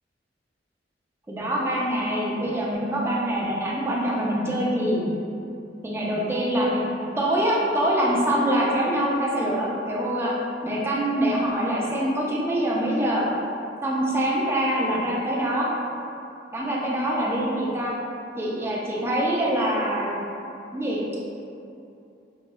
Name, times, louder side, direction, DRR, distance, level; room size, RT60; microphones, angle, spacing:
voice 1, 1.3-5.0 5.8-6.9 7.2-10.3 10.6-13.3 13.8-15.7 16.5-17.9 18.4-20.1 20.7-21.0, right 1 dB, 15° right, -4 dB, 0.4 m, -24 dB
2.9 x 2.9 x 2.2 m, 2.7 s
head